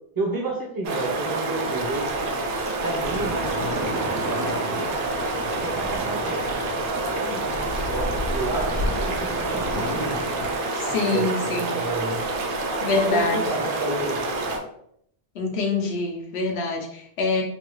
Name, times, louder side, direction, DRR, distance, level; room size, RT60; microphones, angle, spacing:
voice 1, 0.2-2.5 2.8-4.9 5.6-10.2 10.9-12.2 12.9-14.6, right 2 dB, 25° right, 0 dB, 0.6 m, -31 dB
sound 1, 0.8-14.6, right 2 dB, 60° right, 0.7 m, -28 dB
sound 2, 3.0-10.6, equal, 85° right, 1.0 m, -32 dB
voice 2, 10.7-11.8 12.8-13.4 15.3-17.4, left 3 dB, 90° left, 1 dB, 1.0 m, -25 dB
3.4 x 2.3 x 3.0 m, 0.70 s
omnidirectional pair, 1.1 m